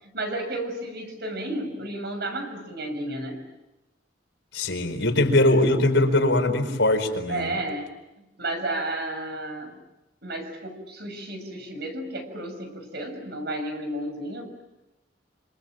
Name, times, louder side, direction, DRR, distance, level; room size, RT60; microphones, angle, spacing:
voice 1, 0.0-3.4 7.3-7.9 8.2-9.8 10.2-14.6, right 1 dB, 60° right, 6 dB, 6.7 m, -32 dB
voice 2, 4.5-7.5, left 1 dB, 80° left, 5 dB, 4.5 m, -21 dB
27.5 x 27.0 x 7.6 m, 1.0 s
head